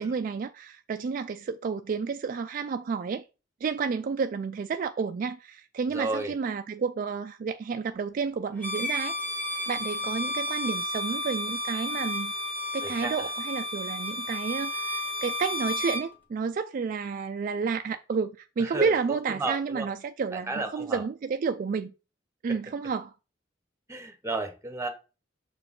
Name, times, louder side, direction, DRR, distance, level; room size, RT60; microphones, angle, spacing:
voice 1, 0.0-3.2 3.6-9.2 9.7-12.3 12.7-21.9 22.4-23.1, right 5 dB, 45° right, 0.3 m, -31 dB
voice 2, 5.9-6.3 12.8-13.1 18.6-19.0 19.4-19.9 20.5-21.0 23.9-24.9, right 2 dB, 15° right, 1.0 m, -32 dB
Bowed string instrument, 8.6-16.1, left 1 dB, 10° left, 1.5 m, -32 dB
6.5 x 4.6 x 3.7 m
head